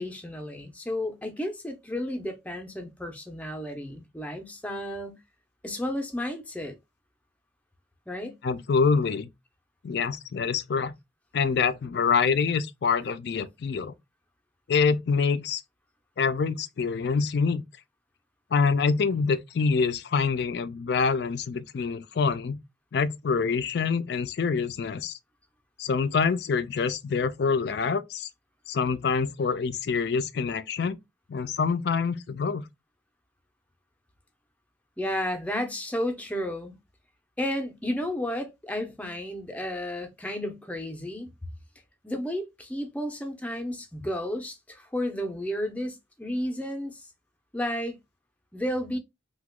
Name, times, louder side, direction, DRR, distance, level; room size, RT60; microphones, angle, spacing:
voice 1, 0.0-5.2 5.6-6.8 8.1-8.4 35.0-36.8 37.4-41.3 42.0-47.1 47.5-48.0 48.5-49.0, left 1 dB, 10° left, 0.5 m, -32 dB
voice 2, 8.4-9.3 9.8-10.9 11.3-13.9 14.7-15.6 16.2-17.6 18.5-22.6 22.9-25.2 25.8-28.3 28.7-31.0 31.3-32.6, left 5 dB, 60° left, 0.4 m, -26 dB
2.9 x 2.2 x 3.4 m
head